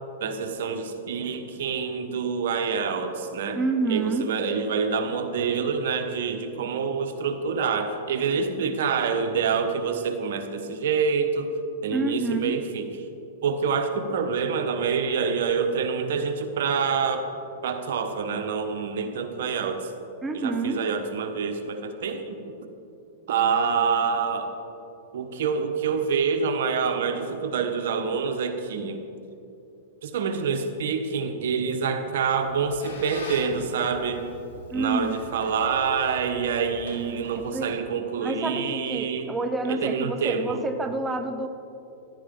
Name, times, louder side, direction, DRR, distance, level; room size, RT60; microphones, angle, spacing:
voice 1, 0.2-3.6 3.9-11.5 11.8-12.9 13.4-17.3 17.6-19.9 20.3-22.6 23.3-24.6 25.1-29.0 30.0-34.3 34.7-39.4 39.6-40.6, right 5 dB, 75° right, 6 dB, 1.2 m, -27 dB
voice 2, 3.5-4.3 11.9-12.6 20.2-20.8 34.7-35.2 37.3-37.7 38.2-41.5, right 3 dB, 10° right, 6 dB, 0.7 m, -28 dB
Squeak, 32.3-37.8, left 1 dB, 85° left, 3.2 m, -44 dB
14.0 x 11.5 x 3.9 m, 2.8 s
hypercardioid pair, 130°, 0 cm